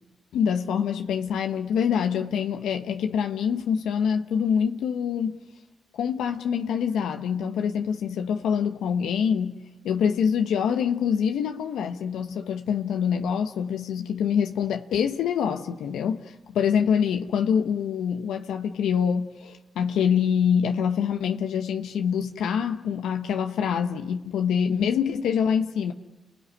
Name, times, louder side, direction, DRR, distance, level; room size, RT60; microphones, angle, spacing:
voice 1, 0.3-5.4 5.9-9.6 9.8-25.9, left 7 dB, 85° left, 1.0 m, -25 dB
30.0 x 16.0 x 9.9 m
supercardioid pair, 55°, 0 cm